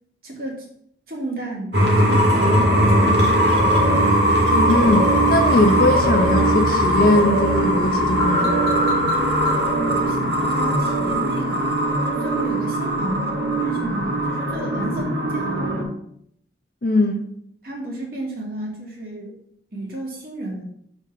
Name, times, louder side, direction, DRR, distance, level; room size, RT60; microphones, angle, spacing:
voice 1, 0.2-0.7 1.1-3.7 9.8-11.7 12.0-15.8 17.6-19.3 19.7-20.6, right 2 dB, 50° right, 2.1 m, -32 dB
sound 1, 1.7-15.8, equal, 70° right, 1.8 m, -19 dB
voice 2, 4.5-8.8 16.8-17.3, left 1 dB, 50° left, 0.6 m, -20 dB
5.5 x 4.4 x 6.0 m
head